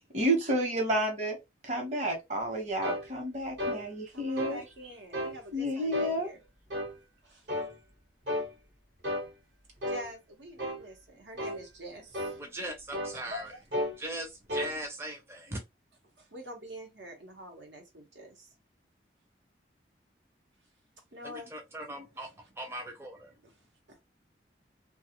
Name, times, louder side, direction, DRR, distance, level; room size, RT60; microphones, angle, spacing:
voice 1, 0.1-1.4 1.6-4.6 5.5-6.3, right 1 dB, 40° right, 1.0 m, -30 dB
sound 1, 2.8-3.1 3.6-3.8 4.4-4.6 5.1-5.4 5.9-6.1 6.7-6.9 7.5-7.7 8.3-8.5 9.0-9.3 9.8-10.1 10.6-10.8 11.4-11.6 12.1-12.4 12.9-13.2 13.7-14.0 14.5-14.7, left 1 dB, 70° right, 1.1 m, -33 dB
voice 2, 4.1-6.4 7.2-7.5 9.9-12.4 13.1-14.1 16.2-18.5 21.1-21.5 22.1-22.5 23.4-23.5 23.9-24.0, equal, 90° right, 1.1 m, -46 dB
voice 3, 12.4-13.5 14.0-15.6 21.2-22.3 22.6-23.3, right 1 dB, 15° right, 0.4 m, -39 dB
2.5 x 2.3 x 2.9 m
head